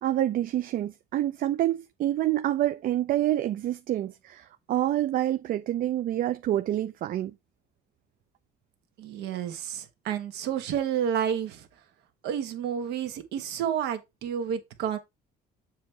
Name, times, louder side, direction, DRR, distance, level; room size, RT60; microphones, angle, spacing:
voice 1, 0.0-7.3, right 13 dB, 55° right, 0.5 m, -27 dB
voice 2, 9.0-11.7 12.2-15.0, right 9 dB, 80° right, 1.3 m, -30 dB
7.4 x 3.0 x 4.5 m
cardioid pair, 110°, 17 cm